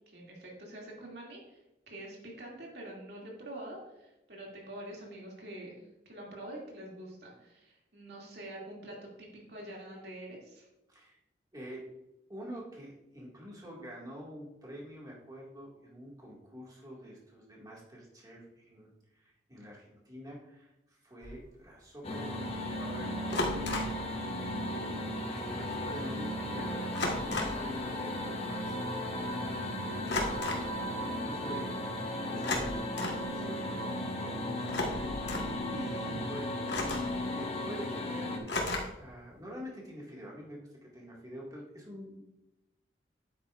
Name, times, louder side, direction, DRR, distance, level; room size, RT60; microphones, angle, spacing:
voice 1, 0.1-1.6 1.9-5.8 6.1-10.7 24.7-25.1 25.6-25.7 29.4-29.7 36.1-36.2, right 1 dB, 65° right, -2 dB, 2.6 m, -46 dB
voice 2, 10.9-11.2 11.5-11.8 12.3-24.0 25.2-28.8 29.9-31.7 32.3-32.8 33.3-34.5 35.1-36.9 37.3-42.2, equal, 20° right, -3 dB, 2.1 m, -47 dB
sound 1, 21.2-21.4 23.3-24.0 25.4-25.5 25.7-26.0 26.9-27.7 30.1-30.7 32.3-33.2 34.6-35.5 36.7-37.2 38.5-39.1, left 2 dB, 75° left, 1.5 m, -34 dB
sound 2, 22.0-38.4, left 1 dB, 35° left, 1.2 m, -36 dB
9.3 x 8.4 x 2.5 m, 0.92 s
head